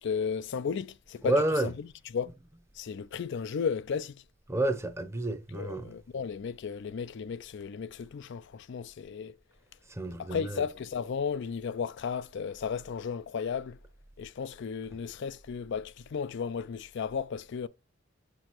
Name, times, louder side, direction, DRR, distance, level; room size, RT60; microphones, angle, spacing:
voice 1, 0.0-2.3 2.8-4.2 5.5-9.4 10.2-13.8 14.2-17.7, left 6 dB, 60° left, 0.4 m, -34 dB
voice 2, 1.2-1.7 4.5-5.9 10.0-10.6, right 1 dB, 15° right, 0.7 m, -29 dB
6.4 x 6.1 x 3.0 m
head